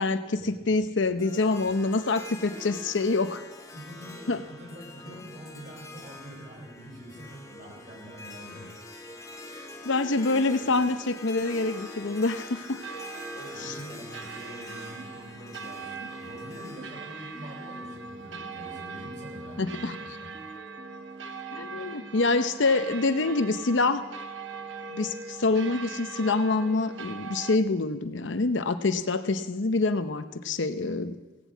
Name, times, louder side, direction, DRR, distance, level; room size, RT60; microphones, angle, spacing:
voice 1, 0.0-3.4 4.3-4.4 9.8-12.8 13.6-13.7 19.6-20.0 21.5-24.0 24.9-31.1, left 3 dB, 80° left, 10 dB, 0.8 m, -26 dB
Harp, 1.2-18.4, left 2 dB, 15° left, 1.0 m, -45 dB
voice 2, 3.7-8.7 9.4-9.7 10.2-10.7 13.3-20.3 21.8-22.0, equal, 40° right, -2 dB, 5.2 m, -45 dB
sound 1, 9.0-27.6, right 4 dB, 80° right, 0.8 m, -42 dB
sound 2, 15.6-18.6 19.1-22.1, equal, 25° right, 1.5 m, -48 dB
17.0 x 7.4 x 8.4 m, 1.1 s
head